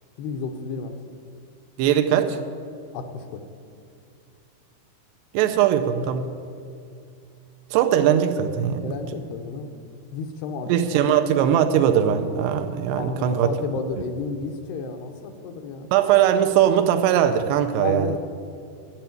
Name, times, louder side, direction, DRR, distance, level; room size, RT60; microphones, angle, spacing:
voice 1, 0.2-1.0 2.9-3.5 8.8-9.7 10.1-11.1 12.9-15.9 17.8-18.2, left 5 dB, 75° left, 5 dB, 2.5 m, -32 dB
voice 2, 1.8-2.4 5.3-6.3 7.7-8.9 10.7-13.5 15.9-18.2, right 9 dB, 80° right, 7 dB, 2.6 m, -20 dB
12.0 x 7.9 x 8.9 m, 2.4 s
omnidirectional pair, 5.1 m